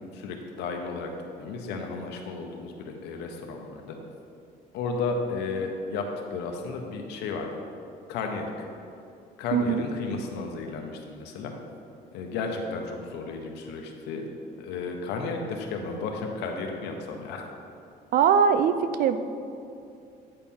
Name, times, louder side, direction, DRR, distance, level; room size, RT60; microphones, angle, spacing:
voice 1, 0.1-1.1 1.4-4.0 4.7-7.6 8.1-8.7 9.4-11.5 12.1-14.2 14.6-17.5, left 4 dB, 85° left, 2 dB, 0.8 m, -33 dB
voice 2, 9.5-9.8 18.1-19.2, right 7 dB, 60° right, 11 dB, 0.4 m, -21 dB
8.6 x 4.3 x 3.6 m, 2.6 s
cardioid pair, 110°, 17 cm